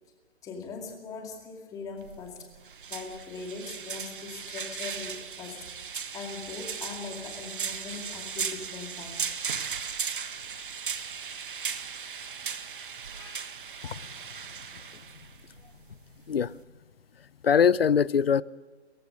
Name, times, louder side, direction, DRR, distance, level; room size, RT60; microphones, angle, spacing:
voice 1, 0.4-2.5 2.9-5.7 6.1-9.2 13.1-13.5, left 4 dB, 10° left, 2.3 m, -41 dB
sound 1, 2.0-16.6, right 6 dB, 50° right, 1.3 m, -37 dB
voice 2, 17.4-18.4, left 7 dB, 55° left, 0.7 m, -22 dB
30.0 x 15.0 x 6.4 m
figure-of-eight pair, 140°, 34 cm